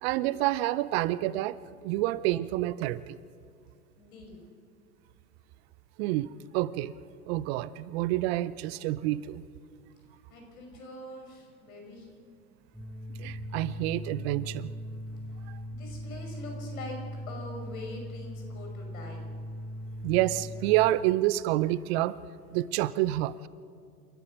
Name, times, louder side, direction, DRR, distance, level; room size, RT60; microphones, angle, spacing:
voice 1, 0.0-1.6 1.8-3.2 6.0-6.9 7.3-9.5 13.2-14.7 15.5-15.6 20.0-22.2 22.5-23.5, right 15 dB, 45° right, 18 dB, 0.6 m, -28 dB
voice 2, 4.0-4.5 10.3-12.1 15.3-17.0 17.3-19.3, left 2 dB, 70° left, 2 dB, 5.8 m, -44 dB
sound 1, 12.7-20.9, equal, ahead, 5.4 m, -39 dB
29.5 x 14.0 x 6.4 m, 2.3 s
figure-of-eight pair, 90°, 44 cm